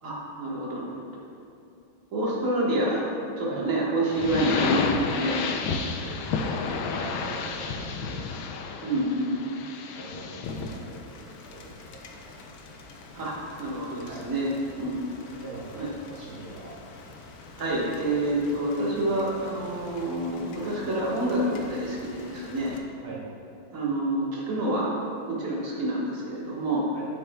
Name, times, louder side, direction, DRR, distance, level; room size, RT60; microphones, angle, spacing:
voice 1, 0.0-1.0 2.1-3.1 3.4-5.4 8.8-9.4 13.1-14.5 14.8-15.1 15.7-15.9 17.6-22.7 23.7-24.9 25.3-26.9, right 1 dB, 45° right, -5 dB, 1.7 m, -28 dB
sound 1, 4.1-10.8, left 4 dB, 90° left, 1.4 m, -31 dB
voice 2, 6.0-8.3 9.8-12.7 14.0-14.3 15.3-16.7 17.6-17.9 23.0-23.2 26.9-27.1, right 3 dB, 85° right, -7 dB, 2.5 m, -44 dB
Rain, 10.4-22.8, left 3 dB, 65° left, 0.9 m, -47 dB
9.4 x 7.9 x 2.3 m, 2.6 s
omnidirectional pair, 2.2 m